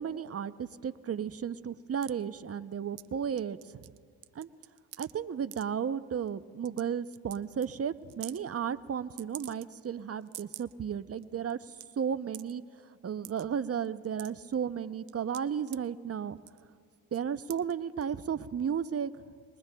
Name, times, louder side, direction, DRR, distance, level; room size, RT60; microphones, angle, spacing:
voice 1, 0.0-3.8 4.3-4.5 5.0-12.6 13.0-16.4 17.1-19.1, right 7 dB, 35° right, 13 dB, 0.6 m, -34 dB
sound 1, 2.0-2.1 3.0-3.1 3.4-5.1 5.5-5.6 6.3-6.4 6.7-6.8 7.1-7.4 7.6-7.7 8.1-8.4 9.2-9.9 10.2-10.7 11.2-11.3 11.5-11.8 12.3-12.5 13.2-13.4 13.9-14.5 15.1-15.8 16.4-16.7 17.1-17.2 17.5-17.7 18.0-18.1, right 19 dB, 90° right, 0.5 m, -46 dB
26.5 x 22.0 x 2.3 m, 2.2 s
supercardioid pair, 60°, 40 cm